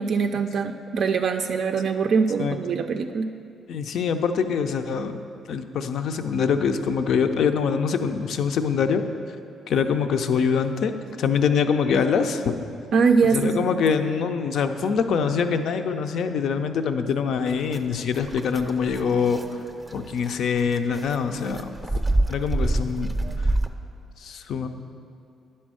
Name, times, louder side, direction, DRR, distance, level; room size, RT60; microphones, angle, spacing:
voice 1, 0.0-3.3 12.9-13.8, right 5 dB, 65° right, 5 dB, 0.3 m, -23 dB
voice 2, 3.7-5.2 5.5-9.0 9.7-10.9 11.2-12.6 13.3-19.4 19.9-21.7 22.3-23.5 24.2-24.7, left 6 dB, 70° left, 8 dB, 0.5 m, -24 dB
sound 1, 17.5-23.7, right 2 dB, 15° right, 0.6 m, -28 dB
10.0 x 4.4 x 6.2 m, 2.5 s
cardioid pair, 90°, 0 cm